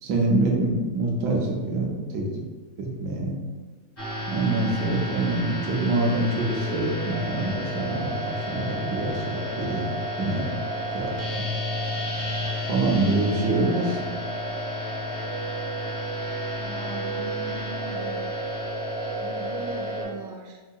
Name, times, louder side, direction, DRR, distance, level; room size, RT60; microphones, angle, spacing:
voice 1, 0.0-2.4 2.8-3.4 4.3-10.5 10.9-11.5 12.7-14.1, right 2 dB, 85° right, -1 dB, 1.2 m, -25 dB
sound 1, 4.0-20.0, equal, 30° left, 0.5 m, -31 dB
voice 2, 16.6-18.3 19.2-20.6, right 3 dB, 70° right, 0 dB, 1.0 m, -39 dB
4.6 x 2.6 x 2.3 m, 1.4 s
omnidirectional pair, 1.6 m